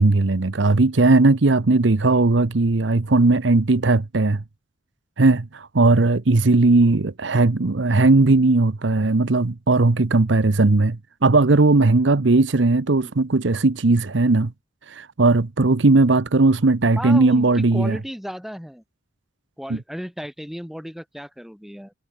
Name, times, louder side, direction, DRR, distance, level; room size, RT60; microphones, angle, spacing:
voice 1, 0.0-4.4 5.2-14.5 14.9-18.0 19.7-19.8, right 3 dB, 70° right, 0.9 m, -18 dB
voice 2, 17.0-18.8 19.6-21.9, equal, ahead, 6.5 m, -34 dB
head